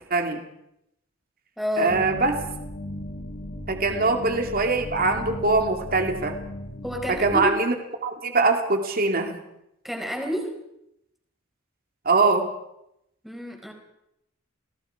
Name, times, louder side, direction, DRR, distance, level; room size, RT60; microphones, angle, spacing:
voice 1, 0.1-0.4 1.8-2.4 3.7-6.4 7.1-7.7 8.0-9.4 12.0-12.5, right 3 dB, 45° right, 4 dB, 2.5 m, -22 dB
voice 2, 1.6-2.0 3.9-4.1 6.8-7.5 9.8-10.5 13.2-13.7, equal, ahead, 2 dB, 4.4 m, -29 dB
sound 1, 1.9-7.5, left 1 dB, 35° left, 1.7 m, -36 dB
30.0 x 19.0 x 4.9 m, 0.82 s
head